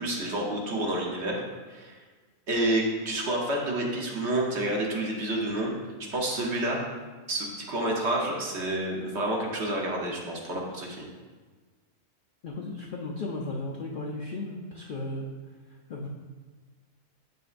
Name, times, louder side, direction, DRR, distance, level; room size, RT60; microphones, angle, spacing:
voice 1, 0.0-1.4 1.7-1.9 2.5-5.7 6.1-6.8 7.3-11.1, right 1 dB, 55° right, -1 dB, 1.2 m, -29 dB
voice 2, 12.4-15.3 15.9-16.1, left 2 dB, 60° left, -2 dB, 0.5 m, -35 dB
7.6 x 5.3 x 2.5 m, 1.4 s
omnidirectional pair, 1.4 m